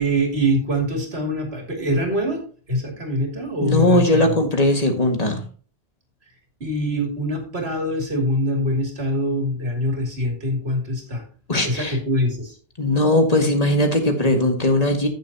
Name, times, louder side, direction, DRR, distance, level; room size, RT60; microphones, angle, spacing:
voice 1, 0.0-2.4 2.7-4.2 6.6-11.3 11.6-12.6, equal, 85° right, 2 dB, 2.8 m, -24 dB
voice 2, 3.6-5.4 11.5-12.0 12.8-15.1, left 1 dB, 40° left, 4 dB, 1.9 m, -19 dB
14.5 x 6.8 x 2.8 m, 0.39 s
omnidirectional pair, 1.0 m